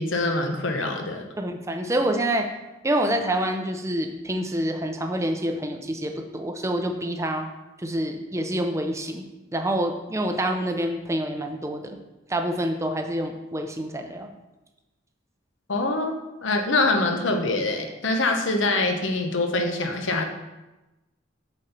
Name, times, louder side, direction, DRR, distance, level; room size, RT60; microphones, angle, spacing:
voice 1, 0.0-1.3 15.7-20.2, left 2 dB, 70° left, 4 dB, 1.0 m, -24 dB
voice 2, 1.4-2.5 2.8-7.5 7.8-9.2 9.5-12.0 12.3-14.3, right 1 dB, 15° right, 5 dB, 0.6 m, -27 dB
7.5 x 4.4 x 6.7 m, 1.0 s
head